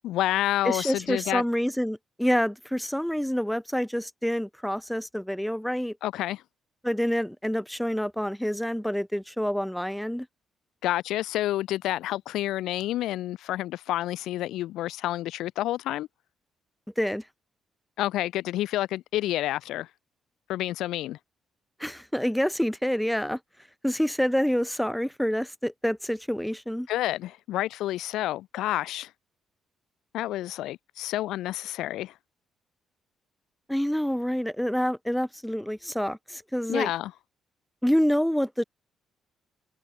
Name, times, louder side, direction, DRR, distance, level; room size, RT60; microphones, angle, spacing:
voice 1, 0.0-1.4 6.0-6.4 10.8-16.1 18.0-19.9 20.5-21.2 26.9-29.1 30.1-32.1 36.7-37.1, left 14 dB, 85° left, 1.9 m, -29 dB
voice 2, 0.6-6.0 6.8-10.3 17.0-17.2 21.8-23.4 23.8-26.9 33.7-36.9 37.8-38.6, equal, ahead, 1.7 m, -27 dB
cardioid pair, 90°, 0 cm